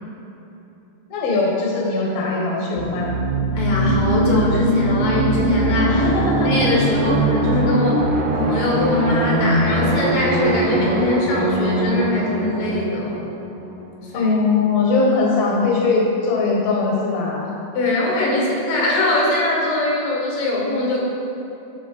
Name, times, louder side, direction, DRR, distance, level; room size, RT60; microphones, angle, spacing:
voice 1, 1.1-3.1 5.9-6.5 14.1-17.5, left 3 dB, 60° left, -2 dB, 1.8 m, -20 dB
sound 1, 2.8-14.3, right 2 dB, 80° right, 2.6 m, -22 dB
voice 2, 3.5-6.0 6.4-8.1 8.4-13.2 14.1-14.4 17.7-21.0, left 2 dB, 85° left, -3 dB, 3.1 m, -21 dB
12.0 x 4.1 x 4.5 m, 2.9 s
omnidirectional pair, 4.0 m